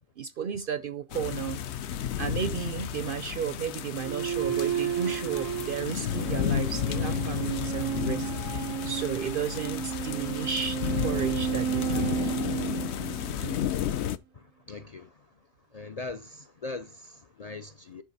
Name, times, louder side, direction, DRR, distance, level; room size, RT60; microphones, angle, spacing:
voice 1, 0.2-1.6 2.2-12.3 13.4-13.6, right 7 dB, 55° right, 0.6 m, -34 dB
sound 1, 1.1-14.2, left 9 dB, 65° left, 0.9 m, -32 dB
sound 2, 4.0-13.7, right 10 dB, 80° right, 1.0 m, -32 dB
voice 2, 14.3-15.5 15.7-18.0, left 3 dB, 45° left, 0.5 m, -42 dB
10.0 x 4.8 x 4.1 m
omnidirectional pair, 1.3 m